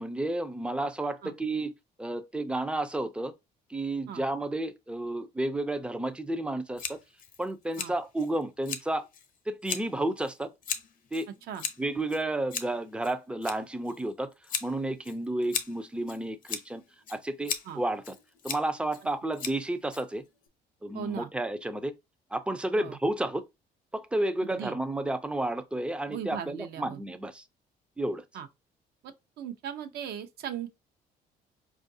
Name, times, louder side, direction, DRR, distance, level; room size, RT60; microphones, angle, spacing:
voice 1, 0.0-1.7 2.0-3.3 3.7-7.0 7.4-9.1 9.5-10.5 11.1-11.3 11.8-14.3 14.6-16.8 17.1-18.2 18.4-20.2 20.8-22.0 22.3-23.5 23.9-27.4 28.0-28.2, right 1 dB, 5° right, 0.4 m, -31 dB
Scissors, 6.8-20.5, left 7 dB, 55° left, 0.7 m, -39 dB
voice 2, 20.9-21.3 22.8-23.0 24.4-24.8 26.1-27.0 28.3-28.5 29.0-30.7, right 9 dB, 70° right, 0.6 m, -38 dB
4.6 x 2.4 x 2.6 m
cardioid pair, 110°, 17 cm